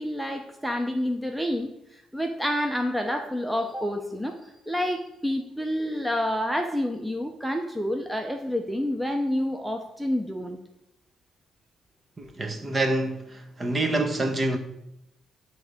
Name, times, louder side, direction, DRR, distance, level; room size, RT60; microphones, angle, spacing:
voice 1, 0.0-1.7 2.1-4.4 4.7-10.6, equal, ahead, 0.8 m, -28 dB
voice 2, 12.2-14.6, right 2 dB, 30° right, 1.1 m, -27 dB
10.5 x 3.5 x 6.5 m
cardioid pair, 90°, 0 cm